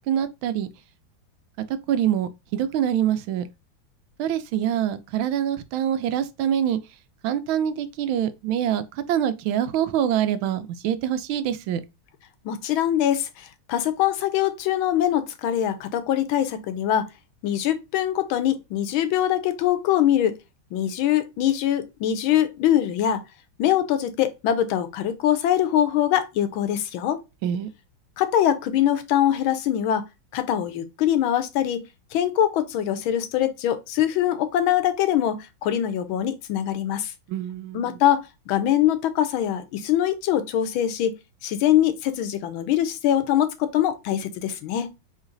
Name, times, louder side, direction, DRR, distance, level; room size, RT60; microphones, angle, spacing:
voice 1, 0.1-0.7 1.9-3.4 4.2-6.8 7.2-8.8 9.1-11.8 27.4-27.7 37.3-37.9, right 10 dB, 85° right, 1.4 m, -25 dB
voice 2, 12.4-17.1 17.4-20.4 20.7-23.2 23.6-27.2 28.2-30.0 30.3-31.8 32.1-37.1 37.7-41.1 41.4-44.9, left 11 dB, 85° left, 1.5 m, -23 dB
3.9 x 3.1 x 3.8 m
omnidirectional pair, 2.2 m